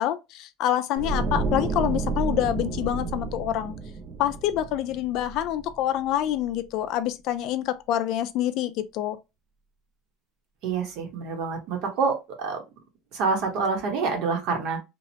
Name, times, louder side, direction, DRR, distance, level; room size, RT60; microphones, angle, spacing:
voice 1, 0.0-3.7 4.2-9.2, left 12 dB, 55° left, 0.3 m, -26 dB
sound 1, 1.0-6.0 6.3-6.6, right 3 dB, 40° right, 0.4 m, -30 dB
voice 2, 10.6-12.6 13.1-14.8, right 4 dB, 60° right, 1.0 m, -27 dB
2.9 x 2.0 x 2.7 m
supercardioid pair, 135°, 0 cm